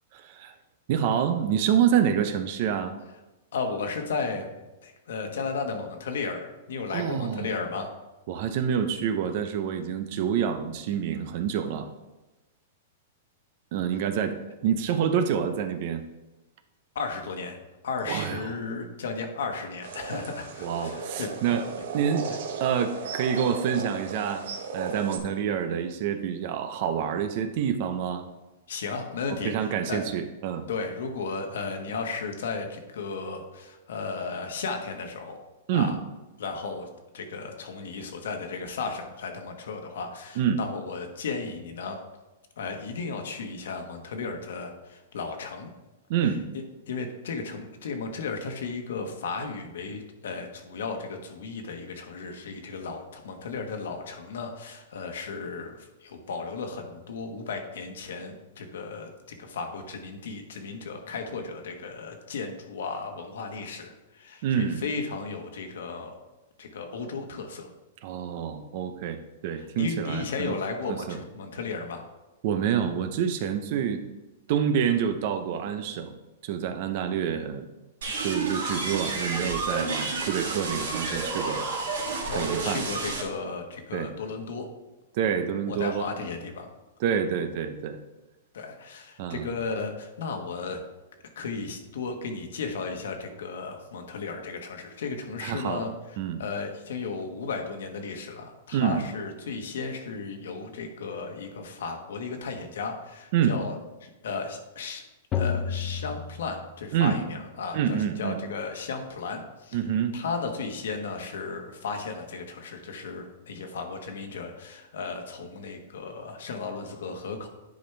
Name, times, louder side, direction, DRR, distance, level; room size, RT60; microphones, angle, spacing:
voice 1, 0.1-0.5 0.9-2.9 6.9-7.5 8.3-11.9 13.7-14.3 14.6-16.0 18.1-18.5 20.6-21.6 21.9-22.3 22.6-24.4 24.7-28.2 29.3-30.7 35.7-35.9 40.4-40.6 46.1-46.4 64.4-64.8 68.0-70.6 70.9-71.2 72.4-74.0 74.5-76.1 76.4-77.7 78.2-81.7 82.3-82.8 83.9-84.1 85.1-86.1 87.0-88.0 89.2-89.5 95.4-96.4 98.7-99.1 103.3-103.6 106.9-107.2 107.7-108.4 109.7-110.1, right 8 dB, 50° right, 9 dB, 0.8 m, -27 dB
voice 2, 3.5-4.5 4.8-7.9 16.9-17.6 17.8-21.6 22.3-22.4 28.7-30.0 30.7-35.4 35.7-35.9 36.4-36.9 37.1-42.0 42.6-45.7 46.9-66.1 66.6-67.7 69.6-72.0 82.3-84.7 85.7-86.7 88.5-90.8 91.3-95.9 96.4-105.0 105.3-109.8 110.1-117.5, left 4 dB, 80° left, 4 dB, 1.4 m, -34 dB
sound 1, 19.8-25.2, right 5 dB, 70° right, 1.1 m, -35 dB
sound 2, 78.0-83.2, right 3 dB, 85° right, 2.5 m, -30 dB
sound 3, 105.3-107.3, left 7 dB, 25° left, 0.7 m, -31 dB
10.0 x 5.2 x 3.4 m, 1.1 s
hypercardioid pair, 155°, 0 cm